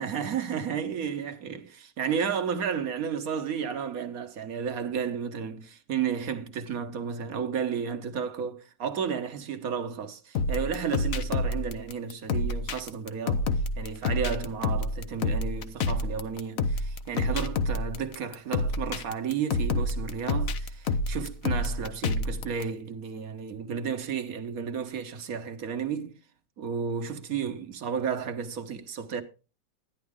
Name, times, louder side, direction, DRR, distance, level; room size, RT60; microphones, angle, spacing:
voice 1, 0.0-13.5 13.8-26.2 26.6-29.2, right 7 dB, 50° right, 1.3 m, -32 dB
sound 1, 10.3-22.6, left 2 dB, 55° left, 1.0 m, -28 dB
11.5 x 10.5 x 3.6 m
omnidirectional pair, 2.1 m